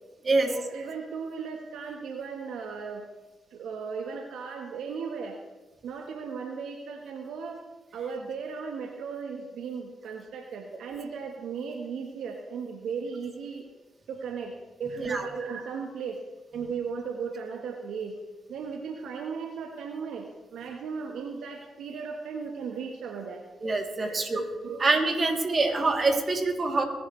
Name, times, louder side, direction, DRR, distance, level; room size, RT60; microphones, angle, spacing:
voice 1, 0.3-3.0 3.5-5.4 5.8-7.6 7.9-13.6 14.1-16.2 16.5-18.2 18.5-23.4 24.0-24.8, right 5 dB, 80° right, 3 dB, 1.1 m, -36 dB
voice 2, 23.6-24.4 24.8-26.8, right 3 dB, 45° right, 2 dB, 2.8 m, -25 dB
22.0 x 11.0 x 3.2 m, 1.2 s
supercardioid pair, 50°, 0 cm